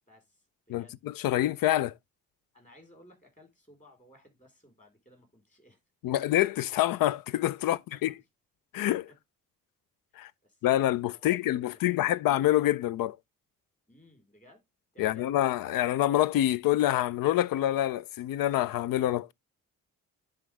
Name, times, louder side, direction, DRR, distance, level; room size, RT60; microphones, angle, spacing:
voice 1, 0.1-1.0 2.5-5.8 6.1-6.2 7.9-8.1 10.4-12.2 13.9-14.6 14.9-15.3, equal, 25° left, 4.2 m, -58 dB
voice 2, 0.7-1.9 6.0-8.1 8.7-9.1 10.2-10.3 10.6-13.2 15.0-19.3, left 14 dB, 90° left, 0.5 m, -26 dB
10.0 x 3.9 x 3.2 m
cardioid pair, 85°, 33 cm